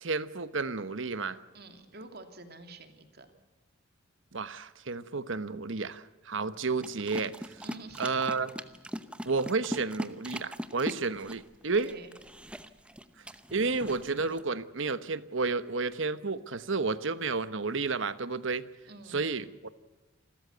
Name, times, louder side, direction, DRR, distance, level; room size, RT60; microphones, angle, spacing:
voice 1, 0.0-1.4 4.3-7.6 8.0-8.5 9.2-11.9 13.5-18.7 19.1-19.7, right 4 dB, 65° right, 14 dB, 1.1 m, -31 dB
voice 2, 1.5-3.3 7.6-8.2 11.8-12.1 18.8-19.2, right 2 dB, 50° right, 7 dB, 2.7 m, -48 dB
sound 1, 6.8-14.4, equal, 5° right, 0.8 m, -41 dB
28.5 x 13.5 x 8.0 m, 1.2 s
head